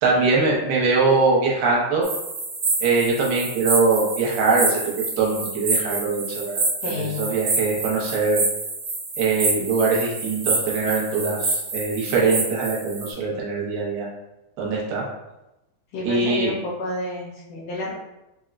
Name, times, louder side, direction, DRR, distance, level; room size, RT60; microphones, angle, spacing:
voice 1, 0.0-2.0 2.8-4.8 5.2-6.6 6.9-8.4 9.2-14.1 14.6-15.0 16.0-16.5, right 4 dB, 80° right, -3 dB, 2.6 m, -22 dB
sound 1, 2.0-13.1, right 3 dB, 60° right, 1.7 m, -27 dB
voice 2, 6.8-7.4 15.9-17.9, left 2 dB, 75° left, -7 dB, 2.2 m, -30 dB
6.1 x 2.1 x 2.4 m, 0.94 s
omnidirectional pair, 4.1 m